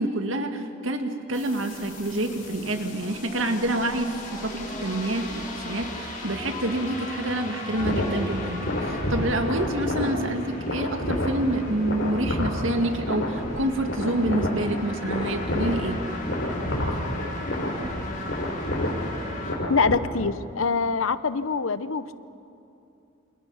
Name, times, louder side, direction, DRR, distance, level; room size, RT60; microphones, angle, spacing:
voice 1, 0.0-4.1 4.4-5.2 5.6-16.0, right 1 dB, 70° right, 5 dB, 2.1 m, -27 dB
sound 1, 1.3-19.5, left 2 dB, 35° left, 5.4 m, -38 dB
sound 2, 7.7-19.9, left 1 dB, 65° left, 4.3 m, -29 dB
voice 2, 19.7-22.1, left 4 dB, 80° left, 14 dB, 0.9 m, -24 dB
28.5 x 27.5 x 5.7 m, 2.7 s
head